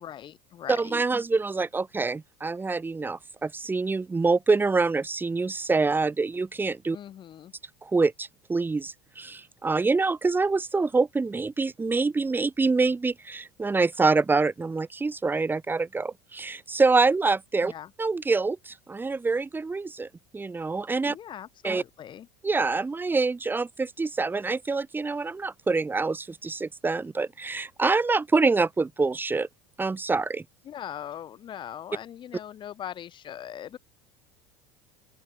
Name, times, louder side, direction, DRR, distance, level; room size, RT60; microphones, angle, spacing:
voice 1, 0.0-1.2 6.9-7.5 17.6-17.9 21.0-22.3 30.6-33.8, left 10 dB, 40° left, 3.8 m, -40 dB
voice 2, 0.8-7.0 7.8-17.7 18.0-20.1 20.3-21.2 21.6-21.8 22.4-29.5 29.8-30.4, right 3 dB, 15° right, 2.5 m, -26 dB
open air
hypercardioid pair, 80°, 13 cm